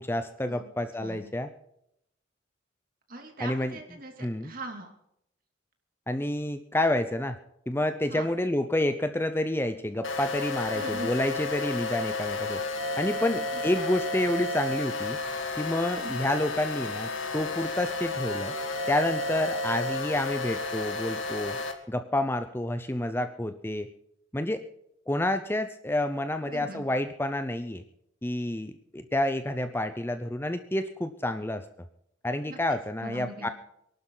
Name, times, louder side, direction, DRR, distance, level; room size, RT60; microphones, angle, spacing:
voice 1, 0.0-1.5 3.4-3.8 4.2-4.5 6.1-7.4 7.7-12.6 13.0-15.2 15.6-18.5 18.9-21.6 21.9-23.9 24.3-24.6 25.1-27.8 28.2-31.6 32.2-33.5, left 1 dB, 10° left, 9 dB, 0.7 m, -29 dB
voice 2, 1.0-1.3 3.1-4.9 8.1-8.3 10.7-11.1 13.2-13.8 15.9-16.2 26.5-26.8 32.5-32.6 33.0-33.5, right 2 dB, 45° right, 3 dB, 3.0 m, -41 dB
sound 1, 10.0-21.7, left 3 dB, 80° left, 2.2 m, -32 dB
23.0 x 12.0 x 4.0 m, 0.76 s
head